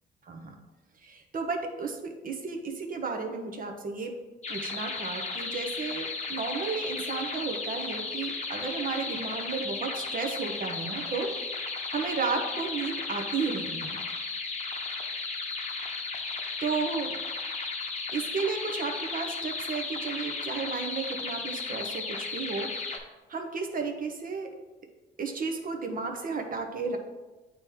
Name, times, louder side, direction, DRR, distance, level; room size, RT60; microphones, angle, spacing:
voice 1, 1.0-4.2 4.5-11.6 11.9-14.0 16.6-17.2 18.1-22.9 23.3-24.5 25.2-27.0, right 4 dB, 45° right, 4 dB, 0.9 m, -33 dB
sound 1, 4.4-23.0, left 4 dB, 35° left, 0.8 m, -35 dB
8.8 x 3.0 x 3.6 m, 1.2 s
cardioid pair, 90°, 20 cm